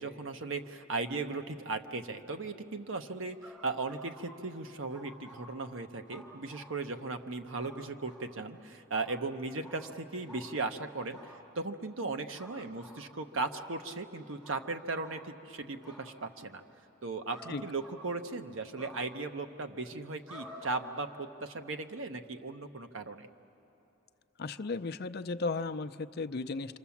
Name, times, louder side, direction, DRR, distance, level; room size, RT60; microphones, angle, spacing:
voice 1, 0.0-16.6 17.0-23.3, right 3 dB, 75° right, 7 dB, 1.0 m, -37 dB
sound 1, 3.4-4.3 4.9-5.4 6.1-6.7 7.6-7.7 8.0-8.2 8.9-9.1 9.6-9.8 10.2-10.4 11.1-11.3 12.3-12.9 13.5-13.7 14.4-14.6 15.0-15.2 15.8-16.0 17.3-17.5 17.8-18.3 18.7-18.9 20.3-20.8, equal, 10° right, 6.9 m, -51 dB
voice 2, 24.4-26.8, left 3 dB, 50° left, 11 dB, 0.5 m, -35 dB
27.0 x 26.5 x 7.2 m, 3.0 s
head